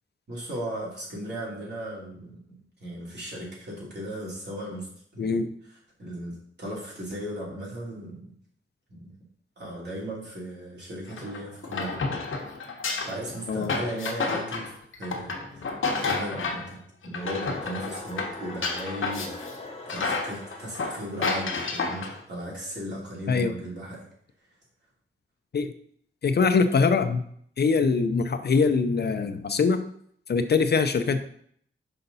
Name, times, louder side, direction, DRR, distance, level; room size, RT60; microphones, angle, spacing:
voice 1, 0.3-4.9 5.1-5.4 5.6-8.3 8.9-9.1 9.6-12.0 13.1-14.7 15.0-24.1, right 1 dB, 55° right, -5 dB, 3.1 m, -37 dB
voice 2, 5.2-5.5 13.5-13.7 23.3-23.5 25.5-25.7 26.2-27.2 27.6-29.8 30.3-31.2, left 4 dB, 55° left, 8 dB, 0.5 m, -23 dB
sound 1, 11.1-16.7 17.0-19.6 19.9-22.2, left 4 dB, 85° left, 1.1 m, -30 dB
sound 2, 17.2-22.2, left 2 dB, 30° left, 1.0 m, -42 dB
5.7 x 5.6 x 4.0 m, 0.64 s
wide cardioid pair, 140°, 21 cm